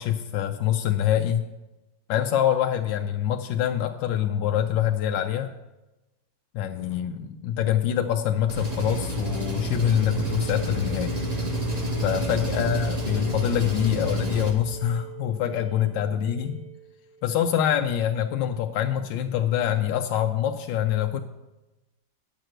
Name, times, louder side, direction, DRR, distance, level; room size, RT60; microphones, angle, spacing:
voice 1, 0.0-1.4 2.1-5.5 6.5-11.1 12.0-16.6 17.2-21.2, left 10 dB, 85° left, 5 dB, 1.3 m, -25 dB
Engine, 8.5-14.5, equal, 25° right, 1.4 m, -29 dB
sound 1, 9.5-17.5, right 10 dB, 70° right, 1.9 m, -43 dB
9.7 x 6.1 x 7.7 m, 1.0 s
omnidirectional pair, 2.0 m